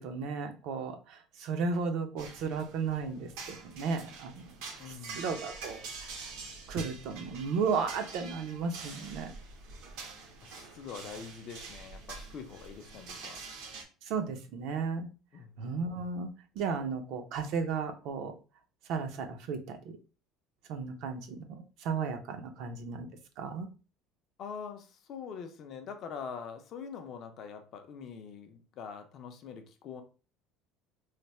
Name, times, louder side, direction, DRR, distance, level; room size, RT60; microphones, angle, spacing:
voice 1, 0.0-4.6 4.9-6.3 6.7-9.3 14.1-15.1 15.6-16.3 16.6-18.3 18.9-19.9 20.7-23.1 23.4-23.7, right 5 dB, 50° right, 6 dB, 0.5 m, -34 dB
sound 1, 2.2-13.8, right 4 dB, 80° right, 0.9 m, -46 dB
voice 2, 4.8-5.3 10.4-13.4 15.3-15.6 24.4-30.0, left 6 dB, 40° left, 6 dB, 0.5 m, -44 dB
3.2 x 2.0 x 4.2 m, 0.34 s
cardioid pair, 180°, 0 cm